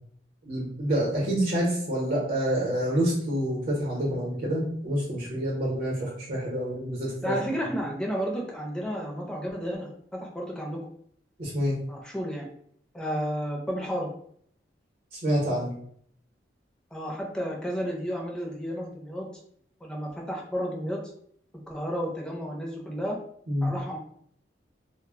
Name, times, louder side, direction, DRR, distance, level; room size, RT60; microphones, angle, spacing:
voice 1, 0.4-7.4 11.4-11.8 15.1-15.7 23.5-23.7, equal, 50° right, -5 dB, 0.7 m, -27 dB
voice 2, 7.2-10.8 11.9-12.5 12.9-14.1 16.9-19.3 19.8-21.0 21.7-23.2 23.6-24.0, equal, 5° left, -2 dB, 0.5 m, -32 dB
2.0 x 2.0 x 3.5 m, 0.63 s
head